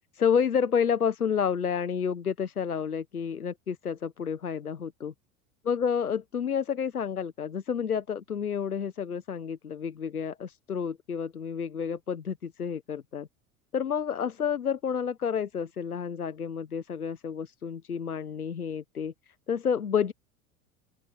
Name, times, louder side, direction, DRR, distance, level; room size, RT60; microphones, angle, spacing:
voice 1, 0.1-5.1 5.6-13.3 13.7-20.1, left 7 dB, 80° left, 1.4 m, -30 dB
open air
figure-of-eight pair, 80°, 44 cm